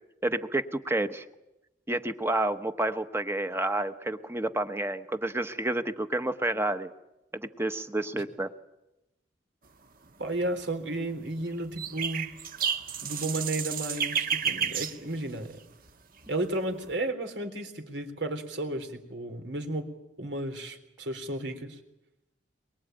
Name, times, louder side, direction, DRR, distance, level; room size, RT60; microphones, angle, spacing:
voice 1, 0.2-1.2 1.9-6.9 7.3-8.5, right 1 dB, 15° right, 9 dB, 1.1 m, -30 dB
sound 1, 10.1-10.6 11.3-15.9 16.2-17.0, right 7 dB, 50° right, 1.7 m, -32 dB
voice 2, 10.2-12.3 13.0-15.6 16.3-19.9 20.2-21.8, right 1 dB, 80° right, 6 dB, 3.7 m, -33 dB
23.0 x 22.5 x 9.1 m, 0.92 s
head